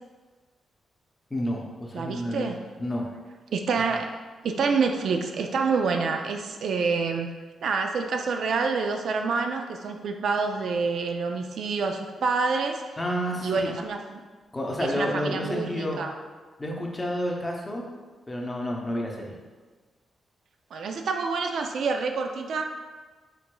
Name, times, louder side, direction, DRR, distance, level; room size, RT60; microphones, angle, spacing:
voice 1, 1.3-2.5 2.8-3.1 13.0-13.7 14.5-16.0 16.6-17.8 18.3-19.3, equal, 15° left, -1 dB, 0.7 m, -30 dB
voice 2, 1.9-2.6 3.5-4.1 4.4-7.3 7.6-13.0 13.4-14.2 14.8-16.1 20.7-22.6, right 4 dB, 70° right, 4 dB, 0.3 m, -27 dB
4.6 x 3.8 x 2.2 m, 1.4 s
cardioid pair, 105°, 0 cm